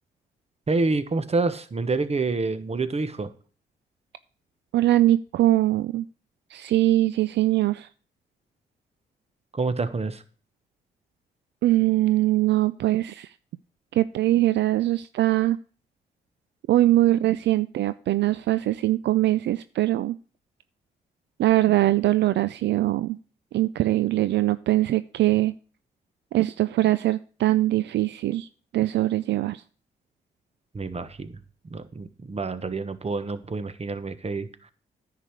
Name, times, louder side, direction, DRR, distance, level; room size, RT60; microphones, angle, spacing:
voice 1, 0.7-3.3 9.5-10.2 30.7-31.4 31.7-34.5, right 3 dB, 35° right, 12 dB, 1.2 m, -27 dB
voice 2, 4.7-6.1 6.5-7.9 11.6-13.3 13.9-15.6 16.7-20.2 21.4-23.2 23.5-25.5 26.3-28.5 28.7-29.6, right 15 dB, 65° right, 15 dB, 0.4 m, -22 dB
10.0 x 5.0 x 7.6 m, 0.41 s
supercardioid pair, 50°, 19 cm